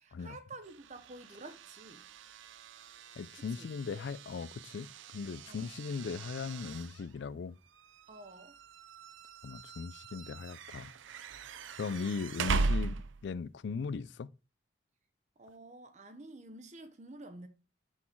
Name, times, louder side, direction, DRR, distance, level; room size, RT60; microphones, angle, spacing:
voice 1, 0.0-2.0 3.4-3.7 5.5-5.7 8.1-8.6 15.4-17.5, right 2 dB, 35° right, 0.7 m, -50 dB
sound 1, 0.6-13.4, right 4 dB, 80° right, 0.5 m, -40 dB
voice 2, 3.2-7.6 9.4-10.9 11.8-13.0 13.2-14.3, left 5 dB, 65° left, 0.3 m, -38 dB
6.2 x 3.8 x 4.5 m
head